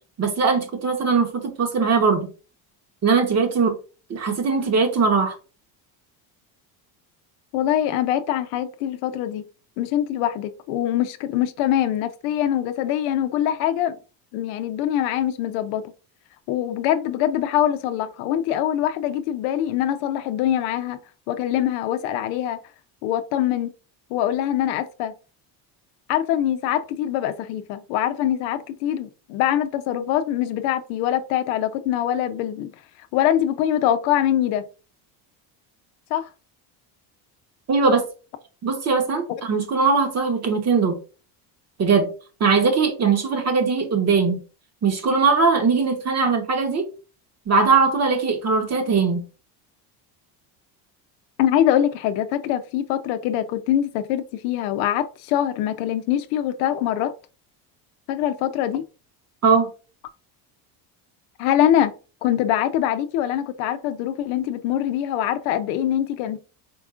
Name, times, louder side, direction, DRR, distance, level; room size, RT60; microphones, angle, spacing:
voice 1, 0.2-2.3 3.0-3.8 4.1-5.3 37.7-38.0 38.6-40.9 41.8-42.1 42.4-44.4 44.8-46.9 47.5-49.2 59.4-59.7, right 4 dB, 35° right, 1.0 m, -20 dB
voice 2, 7.5-9.4 9.8-14.0 14.3-15.9 16.5-21.0 21.3-22.6 23.0-23.7 24.1-25.1 26.1-32.7 33.1-34.6 36.1-36.3 51.4-57.1 58.1-58.8 61.4-61.9 62.2-66.4, left 11 dB, 85° left, 0.6 m, -23 dB
4.7 x 3.6 x 2.4 m
supercardioid pair, 105°, 47 cm